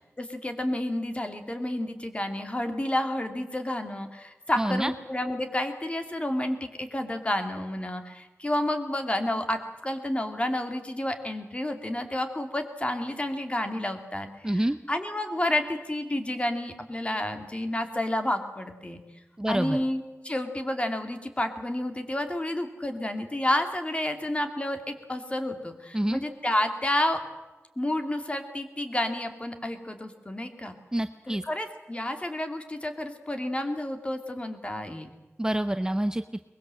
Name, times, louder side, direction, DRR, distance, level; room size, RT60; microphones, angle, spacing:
voice 1, 0.0-19.0 19.5-27.2 27.8-30.7 31.3-35.1, left 1 dB, 25° left, 6 dB, 2.4 m, -30 dB
voice 2, 4.6-4.9 14.4-14.8 19.4-19.8 25.9-26.2 30.9-31.4 35.4-36.2, right 1 dB, 15° right, 10 dB, 0.7 m, -27 dB
22.5 x 21.0 x 7.7 m, 1.1 s
wide cardioid pair, 95°, 5 cm